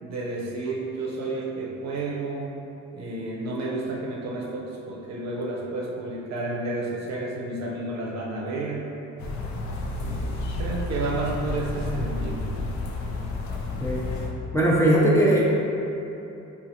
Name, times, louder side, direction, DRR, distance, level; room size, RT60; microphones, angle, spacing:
voice 1, 0.0-2.5 2.9-8.9 10.0-12.5, right 2 dB, 60° right, -2 dB, 0.6 m, -31 dB
sound 1, 9.2-14.3, left 2 dB, 70° left, 0.5 m, -31 dB
voice 2, 14.5-15.4, right 1 dB, 10° left, -6 dB, 0.5 m, -19 dB
4.2 x 2.5 x 2.7 m, 2.9 s
cardioid pair, 90°, 30 cm